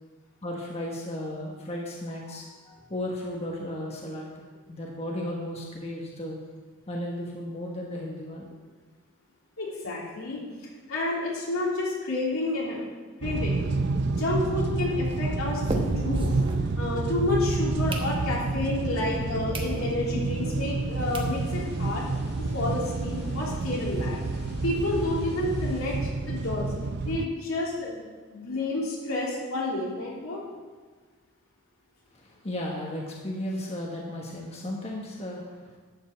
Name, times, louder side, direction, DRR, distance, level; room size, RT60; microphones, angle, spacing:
voice 1, 0.4-4.3 4.7-6.4 6.9-8.6 32.1-35.8, left 1 dB, 30° left, -2 dB, 1.3 m, -35 dB
voice 2, 9.6-10.4 10.9-12.8 13.2-13.5 14.0-16.3 16.8-22.0 22.5-24.2 24.6-26.0 26.3-26.7 27.0-28.0 28.3-30.4, left 2 dB, 85° left, -4 dB, 3.3 m, -30 dB
sound 1, 13.2-27.3, right 3 dB, 55° right, 0.5 m, -29 dB
sound 2, 13.3-17.3 17.6-18.6 19.1-19.2 19.5-19.8 20.2-20.3 20.8-20.9 21.1-21.3 21.8-21.9 22.0-22.2 22.5-22.6 22.9-24.0, right 1 dB, 25° right, 1.0 m, -36 dB
sound 3, 21.0-26.0, left 1 dB, 50° left, 1.9 m, -47 dB
11.5 x 5.5 x 7.4 m, 1.4 s
head